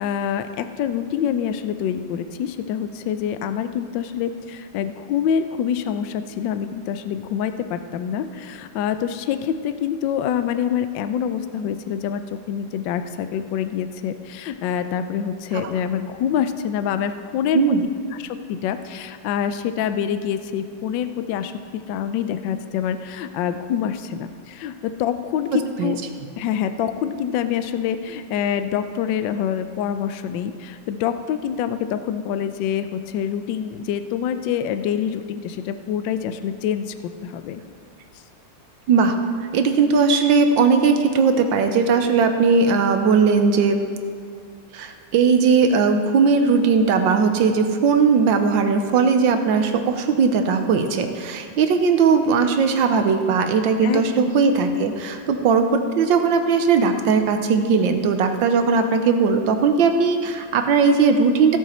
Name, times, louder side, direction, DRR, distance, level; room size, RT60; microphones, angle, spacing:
voice 1, 0.0-17.8 18.1-26.0 26.4-37.6 53.8-54.3, left 8 dB, 70° left, 10 dB, 1.2 m, -26 dB
voice 2, 39.5-43.8 44.7-61.6, right 5 dB, 70° right, 7 dB, 1.4 m, -18 dB
16.0 x 7.3 x 4.3 m, 2.3 s
omnidirectional pair, 2.3 m